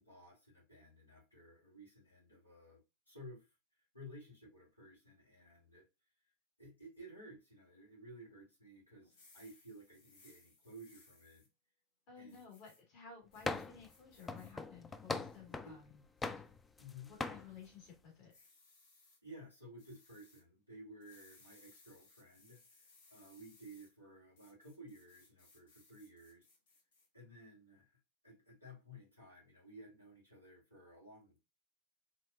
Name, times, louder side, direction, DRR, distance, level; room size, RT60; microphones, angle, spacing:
voice 1, 0.0-2.8 3.1-3.5 3.9-5.9 6.6-11.5 12.2-12.5 15.6-15.8 16.8-17.1 19.2-26.5 27.1-28.0 28.2-31.5, equal, 85° left, -5 dB, 2.6 m, -55 dB
sound 1, 9.0-11.5 12.3-12.8 13.3-14.5 15.0-15.6 16.2-16.5 18.3-19.2 19.8-20.4 21.0-23.9 24.4-27.1, left 3 dB, 60° left, 1.6 m, -66 dB
voice 2, 12.1-16.0 17.1-18.3, left 6 dB, 40° left, -1 dB, 2.0 m, -55 dB
sound 2, 13.4-13.9 14.3-15.8 16.2-16.9 17.2-17.4, left 3 dB, 10° left, 0.3 m, -40 dB
4.5 x 3.5 x 2.3 m, 0.26 s
figure-of-eight pair, 90°, 0 cm